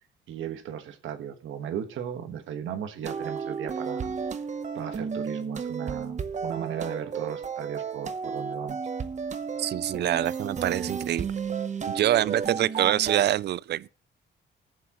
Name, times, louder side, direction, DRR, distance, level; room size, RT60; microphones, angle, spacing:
voice 1, 0.3-4.1 4.7-8.8, right 9 dB, 80° right, 1.4 m, -36 dB
sound 1, 3.0-13.2, right 6 dB, 35° right, 0.9 m, -33 dB
voice 2, 9.6-11.3 11.9-13.9, right 12 dB, 60° right, 0.4 m, -25 dB
19.5 x 7.2 x 3.0 m
cardioid pair, 90°, 20 cm